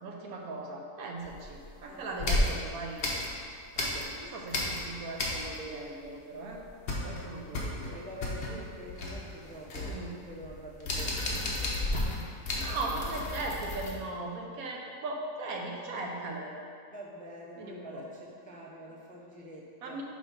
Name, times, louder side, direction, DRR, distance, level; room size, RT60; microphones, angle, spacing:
voice 1, 0.0-3.1 3.7-6.6 7.0-8.0 9.8-10.1 12.5-16.5 17.6-18.0 19.8-20.0, right 2 dB, 75° right, 0 dB, 1.4 m, -38 dB
sound 1, 1.2-1.8 2.2-4.2 4.5-5.8 6.0-6.1 6.5-13.9, left 2 dB, 50° left, 1.2 m, -33 dB
voice 2, 1.9-2.5 7.9-12.0 16.9-20.0, right 1 dB, 10° left, -4 dB, 0.5 m, -46 dB
6.4 x 4.6 x 5.3 m, 2.3 s
omnidirectional pair, 1.5 m